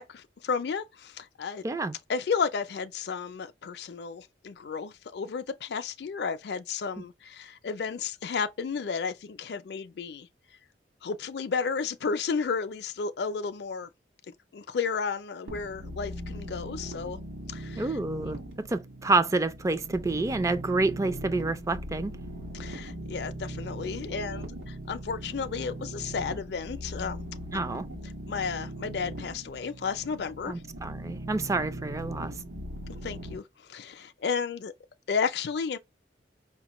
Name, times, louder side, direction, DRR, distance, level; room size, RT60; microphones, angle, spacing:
voice 1, 0.0-1.6 2.1-10.3 11.0-13.9 14.5-17.2 17.5-17.8 22.5-27.2 28.3-30.5 32.9-33.4 33.7-34.7 35.1-35.8, left 5 dB, 65° left, 0.4 m, -32 dB
voice 2, 1.6-2.0 7.0-7.1 17.8-22.1 27.5-27.9 30.5-32.3, right 3 dB, 20° right, 0.3 m, -28 dB
sound 1, 15.5-33.4, right 1 dB, 85° right, 1.4 m, -39 dB
5.1 x 2.1 x 3.0 m
head